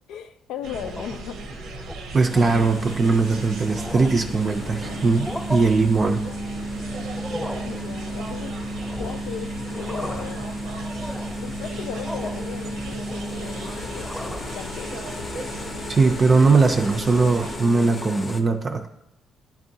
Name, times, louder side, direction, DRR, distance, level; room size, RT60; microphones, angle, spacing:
voice 1, 0.1-1.4 7.6-8.6 9.0-10.4 11.4-14.9, left 8 dB, 90° left, 8 dB, 0.4 m, -37 dB
sound 1, 0.6-17.6, right 2 dB, 90° right, 0.7 m, -37 dB
sound 2, 0.7-1.3 1.7-2.0 2.3-2.6 3.2-3.3 3.6-4.3 5.1-5.6 7.0-7.7 8.8-9.3 9.7-10.4 10.8-11.4 12.0-12.5 12.8-13.5 13.9-14.6, left 1 dB, 10° left, 0.8 m, -36 dB
voice 2, 2.1-6.2 15.9-18.8, right 4 dB, 40° right, 3 dB, 0.4 m, -20 dB
sound 3, 2.3-18.4, equal, 40° left, 0.6 m, -34 dB
10.5 x 3.6 x 2.7 m, 0.84 s
cardioid pair, 90°, 0 cm